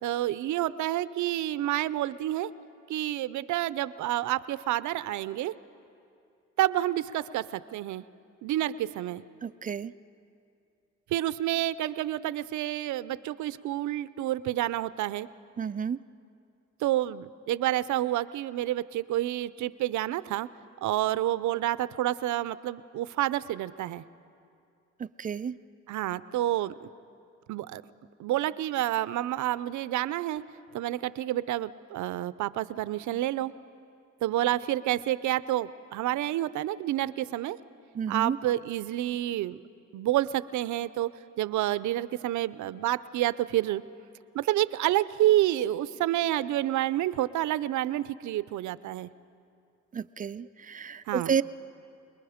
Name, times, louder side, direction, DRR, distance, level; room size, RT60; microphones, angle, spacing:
voice 1, 0.0-2.5 2.9-5.5 6.6-8.0 8.4-9.2 11.1-15.3 16.8-20.5 20.8-24.0 25.9-26.9 27.5-27.8 28.2-30.4 30.7-33.5 34.2-37.6 38.1-39.6 39.9-41.1 41.4-43.8 44.3-49.1 51.1-51.3, right 14 dB, 75° right, 17 dB, 0.6 m, -29 dB
voice 2, 9.4-9.9 15.6-16.0 25.0-25.6 37.9-38.4 49.9-51.4, right 7 dB, 30° right, 14 dB, 0.4 m, -31 dB
27.5 x 20.5 x 5.0 m, 2.5 s
cardioid pair, 90°, 30 cm